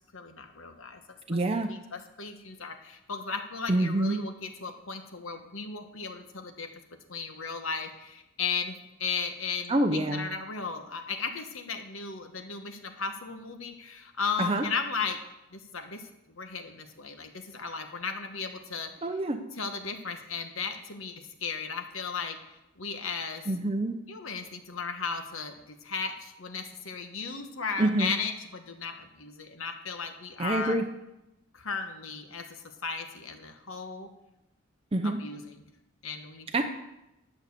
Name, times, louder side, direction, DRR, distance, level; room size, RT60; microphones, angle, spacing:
voice 1, 0.1-1.0 1.3-1.4 1.7-6.7 7.1-15.2 15.5-16.0 16.3-18.9 19.6-23.4 24.1-30.8 31.5-34.1 35.0-35.6 36.0-36.5, left 5 dB, 65° left, 6 dB, 1.2 m, -36 dB
voice 2, 1.3-1.7 3.7-4.2 9.7-10.3 14.4-14.6 19.0-19.4 23.5-24.0 27.8-28.1 30.4-30.8 34.9-35.2 36.5-36.6, right 1 dB, 25° right, 4 dB, 0.6 m, -26 dB
11.0 x 6.4 x 7.0 m, 0.92 s
head